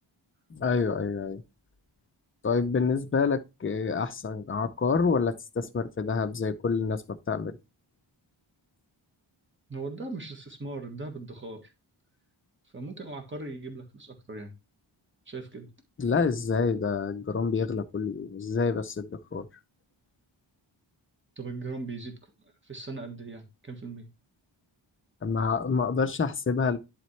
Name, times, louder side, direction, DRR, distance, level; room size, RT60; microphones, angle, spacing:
voice 1, 0.5-1.4 2.4-7.6 16.0-19.5 25.2-26.8, left 5 dB, 25° left, 0.6 m, -27 dB
voice 2, 9.7-11.7 12.7-14.5 15.3-15.7 21.4-22.3 22.6-24.1, right 3 dB, 25° right, 1.5 m, -39 dB
10.5 x 4.3 x 3.2 m
wide cardioid pair, 135°, 47 cm